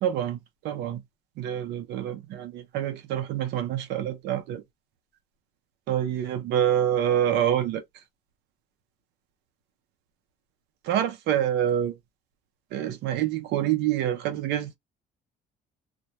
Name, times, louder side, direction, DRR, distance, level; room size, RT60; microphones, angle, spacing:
voice 1, 0.0-0.4 0.6-1.0 1.4-4.6 5.9-7.8 10.8-11.9 12.7-14.8, right 10 dB, 85° right, 0.6 m, -26 dB
2.2 x 2.1 x 2.8 m
cardioid pair, 110°, 17 cm